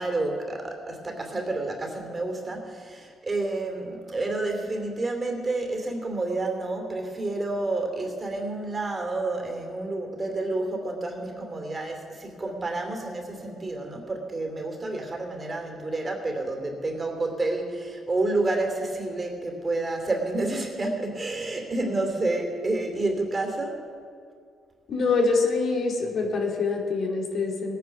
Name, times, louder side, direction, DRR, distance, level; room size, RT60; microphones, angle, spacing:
voice 1, 0.0-23.8, right 2 dB, 30° right, 3 dB, 2.7 m, -29 dB
voice 2, 24.9-27.8, left 4 dB, 60° left, 1 dB, 2.6 m, -25 dB
18.5 x 9.3 x 5.9 m, 2.2 s
cardioid pair, 90°, 0 cm